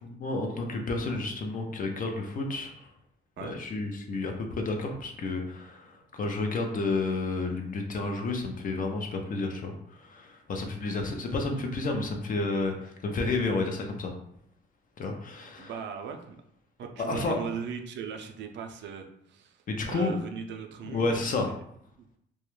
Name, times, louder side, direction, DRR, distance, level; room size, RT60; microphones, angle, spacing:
voice 1, 0.0-2.9 3.4-9.7 10.0-14.1 15.0-15.7 17.0-17.4 19.7-20.1 20.8-21.5, left 3 dB, 45° left, 3 dB, 0.5 m, -31 dB
voice 2, 15.6-16.4 16.8-21.4, right 6 dB, 65° right, 5 dB, 0.4 m, -38 dB
2.2 x 2.1 x 3.0 m, 0.71 s
cardioid pair, 90°, 20 cm